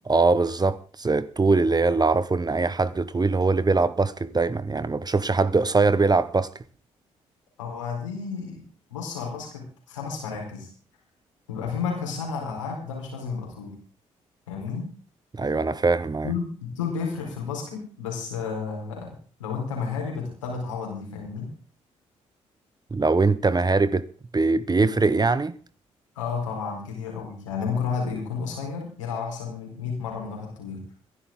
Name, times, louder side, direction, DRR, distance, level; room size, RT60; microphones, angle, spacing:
voice 1, 0.1-6.5 15.3-16.3 22.9-24.1 24.3-25.6, right 3 dB, 25° right, 1.1 m, -22 dB
voice 2, 7.6-8.6 8.9-10.7 11.5-13.7 14.5-14.9 16.2-21.5 26.2-30.8, left 5 dB, 90° left, 4.5 m, -32 dB
22.0 x 11.5 x 3.8 m
hypercardioid pair, 40°, 16 cm